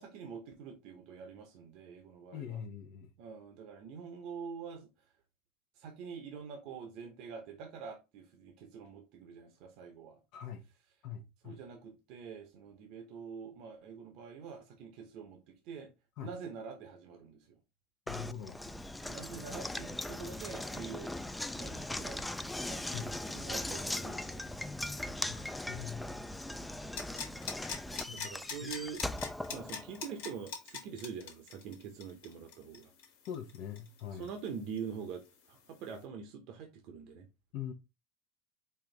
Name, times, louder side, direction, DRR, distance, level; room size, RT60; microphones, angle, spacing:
voice 1, 0.0-2.6 3.2-4.9 5.8-10.2 11.4-15.9 16.2-17.6 19.0-21.2 21.5-22.3 22.7-23.0 23.3-24.5 26.8-27.0 28.1-29.0 29.5-32.9 34.1-37.3, right 6 dB, 60° right, 0.8 m, -45 dB
voice 2, 2.3-3.1 10.3-10.6 11.0-11.6 16.2-16.3 18.1-18.6 22.9-23.1 25.3-26.2 28.1-28.3 28.6-28.7 33.3-34.3 37.5-37.7, left 8 dB, 60° left, 0.7 m, -43 dB
Knock, 18.1-30.2, left 1 dB, 5° left, 0.3 m, -40 dB
sound 1, 27.0-34.5 34.8-34.9, left 6 dB, 75° left, 1.3 m, -42 dB
4.4 x 2.6 x 3.3 m
supercardioid pair, 100°, 0 cm